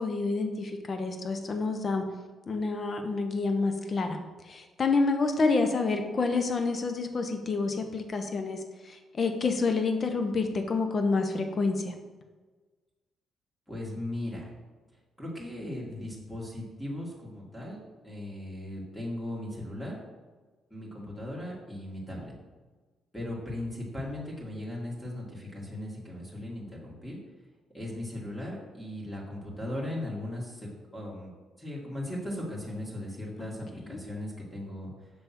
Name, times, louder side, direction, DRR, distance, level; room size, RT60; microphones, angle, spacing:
voice 1, 0.0-2.0 2.5-4.2 4.5-12.0 33.4-34.0, left 3 dB, 40° left, 6 dB, 0.9 m, -28 dB
voice 2, 13.7-14.5 15.2-20.0 20.7-22.3 23.1-27.2 27.7-31.3 31.6-35.1, left 1 dB, 10° left, -4 dB, 2.0 m, -38 dB
7.1 x 3.4 x 5.9 m, 1.3 s
cardioid pair, 90°, 0 cm